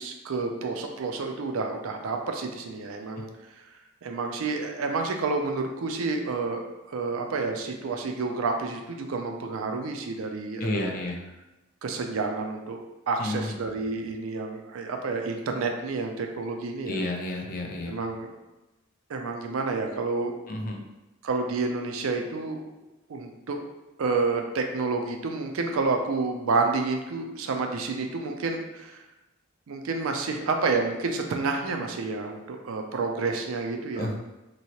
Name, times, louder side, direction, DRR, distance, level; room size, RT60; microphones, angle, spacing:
voice 1, 0.0-3.3 4.0-10.9 11.8-12.8 13.1-17.0 17.9-18.3 19.1-20.3 21.2-22.8 23.1-23.6 24.0-29.0 29.7-34.1, right 3 dB, 75° right, 4 dB, 0.4 m, -29 dB
voice 2, 10.6-11.2 13.2-13.6 16.9-18.0 20.5-20.8 34.0-34.2, left 2 dB, 40° left, 1 dB, 0.4 m, -31 dB
3.0 x 2.7 x 2.8 m, 1.0 s
head